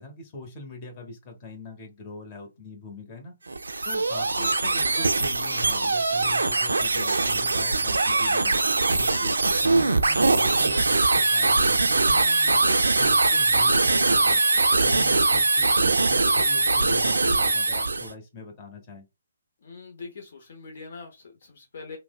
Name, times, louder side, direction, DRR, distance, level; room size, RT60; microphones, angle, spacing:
voice 1, 0.0-3.3 3.8-8.5 8.9-14.4 14.8-19.0, left 2 dB, 30° left, 0.9 m, -42 dB
sound 1, 3.5-18.1, right 3 dB, 80° right, 0.3 m, -22 dB
voice 2, 19.6-22.0, left 4 dB, 60° left, 0.7 m, -42 dB
3.1 x 2.0 x 2.3 m
figure-of-eight pair, 135°, 0 cm